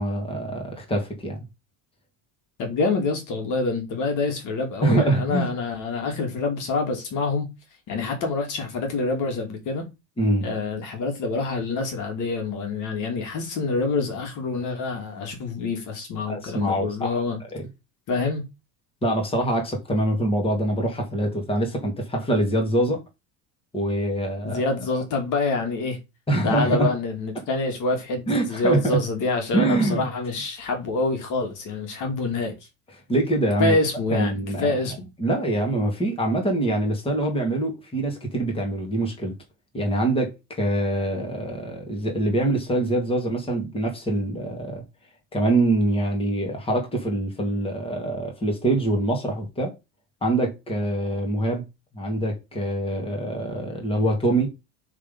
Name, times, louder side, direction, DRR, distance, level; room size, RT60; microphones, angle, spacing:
voice 1, 0.0-1.4 4.8-5.5 10.2-10.5 16.3-17.1 19.0-23.0 23.7-24.6 26.3-26.9 28.3-29.0 29.5-30.1 33.1-33.7 34.1-34.7 35.2-39.4 39.7-44.8 45.3-49.7 50.2-51.6 51.9-54.5, right 1 dB, 15° left, 2.3 m, -24 dB
voice 2, 2.6-7.5 7.9-9.9 10.4-17.4 18.1-18.5 24.4-26.0 26.4-32.7 33.6-35.1, left 3 dB, 55° left, 2.4 m, -26 dB
6.4 x 3.8 x 5.4 m
cardioid pair, 130°, 38 cm